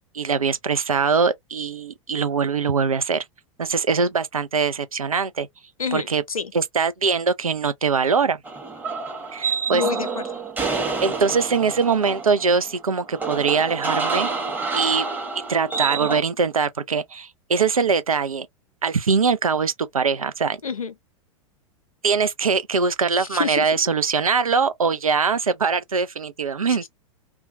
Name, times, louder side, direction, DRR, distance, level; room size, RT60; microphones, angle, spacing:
voice 1, 0.1-3.2 3.6-5.5 5.9-6.2 6.5-8.4 9.3-9.8 11.0-14.3 14.8-15.1 15.5-18.5 18.8-20.6 22.0-26.8, right 5 dB, 85° right, 0.5 m, -22 dB
voice 2, 5.8-6.5 9.7-10.2 20.6-20.9 23.2-23.7 26.7-26.9, left 6 dB, 85° left, 0.5 m, -28 dB
sound 1, 8.4-16.2, right 4 dB, 10° right, 0.9 m, -28 dB
2.3 x 2.2 x 2.5 m
figure-of-eight pair, 90°, 17 cm